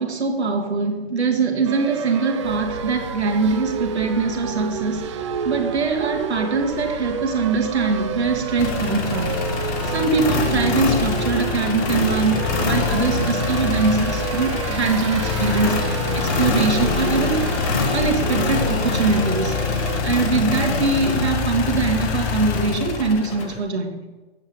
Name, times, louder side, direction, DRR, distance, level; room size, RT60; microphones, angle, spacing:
voice 1, 0.0-5.1 5.4-9.5 9.9-17.5 17.9-19.6 20.0-24.0, right 4 dB, 90° right, 3 dB, 2.0 m, -22 dB
sound 1, 1.6-20.0, right 6 dB, 30° right, 0.5 m, -30 dB
sound 2, 2.4-20.7, equal, 60° left, 2.8 m, -39 dB
sound 3, 8.6-23.6, left 5 dB, 20° left, 0.7 m, -24 dB
8.9 x 5.9 x 5.3 m, 1.2 s
hypercardioid pair, 155°, 32 cm